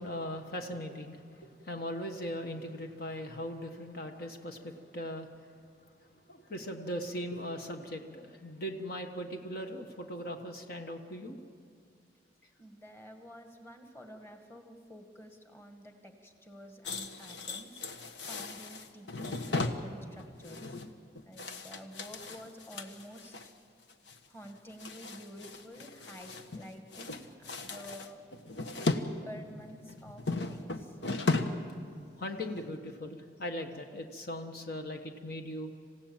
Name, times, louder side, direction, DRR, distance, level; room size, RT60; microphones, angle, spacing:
voice 1, 0.0-5.5 5.8-11.4 32.2-35.7, equal, 55° left, 4 dB, 1.4 m, -39 dB
voice 2, 12.6-20.8 21.2-23.4 24.3-28.2 28.9-31.0, equal, 15° left, 4 dB, 1.9 m, -50 dB
sound 1, 16.9-23.5 23.9-24.2 24.4-26.7 26.9-29.1 29.4-31.7 32.0-32.2 32.6-32.7, left 3 dB, 80° left, 1.3 m, -36 dB
27.5 x 16.0 x 9.0 m, 2.2 s
head